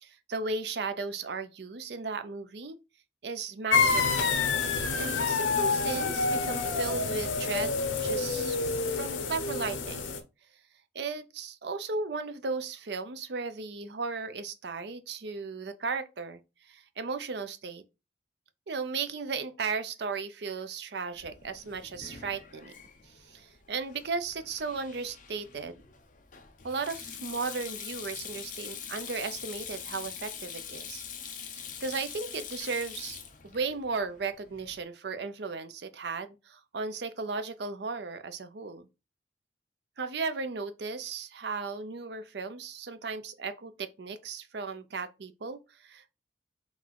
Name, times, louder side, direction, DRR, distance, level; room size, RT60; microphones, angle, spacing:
voice 1, 0.0-2.8 3.2-4.3 5.0-8.6 8.9-10.0 10.9-16.4 16.7-17.8 18.7-22.7 23.3-25.7 26.6-31.1 31.4-33.2 33.4-38.9 40.0-46.1, right 4 dB, 60° right, 0.5 m, -35 dB
sound 1, 3.7-10.2, left 4 dB, 85° left, 0.7 m, -28 dB
Sink (filling or washing), 21.1-34.8, left 8 dB, 45° left, 0.6 m, -44 dB
4.0 x 2.7 x 4.5 m
head